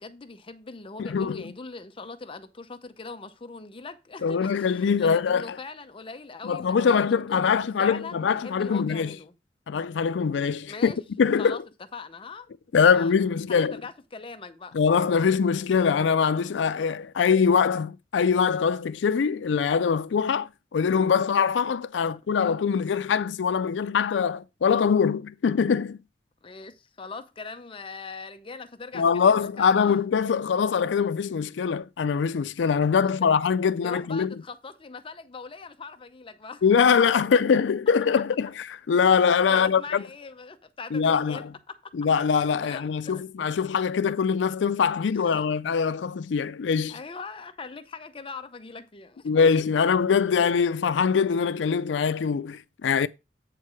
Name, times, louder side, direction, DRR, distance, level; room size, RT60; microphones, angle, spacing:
voice 1, 0.0-9.4 10.7-11.0 11.4-11.6 11.9-12.5 12.9-14.7 15.2-15.3 22.0-22.2 26.4-30.0 33.8-36.6 39.5-41.8 42.6-43.2 45.2-45.5 46.9-49.8, left 4 dB, 30° left, 0.6 m, -41 dB
voice 2, 1.0-1.4 4.2-5.6 6.4-9.1 9.7-10.9 11.2-11.6 12.7-13.8 14.7-26.0 28.9-34.3 36.6-38.5 38.9-40.0 40.9-41.5 41.9-47.0 49.3-53.1, left 6 dB, 85° left, 0.4 m, -23 dB
8.2 x 4.6 x 4.7 m
head